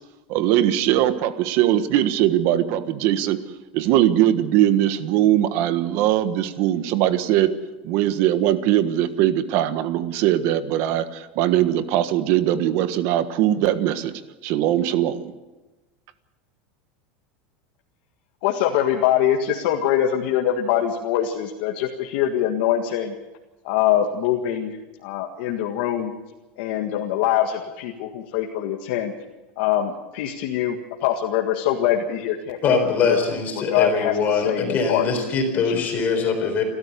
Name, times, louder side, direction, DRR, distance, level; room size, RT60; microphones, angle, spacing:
voice 1, 0.3-3.4 3.7-7.5 7.8-14.1 14.4-15.3, right 12 dB, 50° right, 11 dB, 1.5 m, -20 dB
voice 2, 18.4-23.1 23.6-26.1 26.6-29.1 29.6-32.7 33.0-33.2 33.7-35.1 35.5-36.2, left 10 dB, 65° left, 1 dB, 1.9 m, -23 dB
voice 3, 32.6-36.6, left 5 dB, 30° left, 4 dB, 4.1 m, -22 dB
28.5 x 13.5 x 6.8 m, 1.1 s
supercardioid pair, 155°, 6 cm